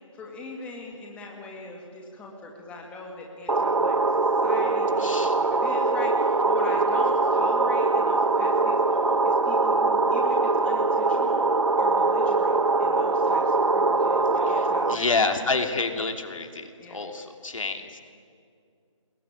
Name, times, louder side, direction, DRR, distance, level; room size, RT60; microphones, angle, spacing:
voice 1, 0.1-11.4 11.8-15.3 16.8-17.0, left 3 dB, 5° left, -1 dB, 2.1 m, -41 dB
sound 1, 3.5-15.0, right 3 dB, 90° right, 1.3 m, -22 dB
voice 2, 5.0-5.3 14.4-18.0, left 3 dB, 75° left, 5 dB, 3.1 m, -28 dB
28.0 x 21.0 x 8.9 m, 2.3 s
figure-of-eight pair, 160°, 17 cm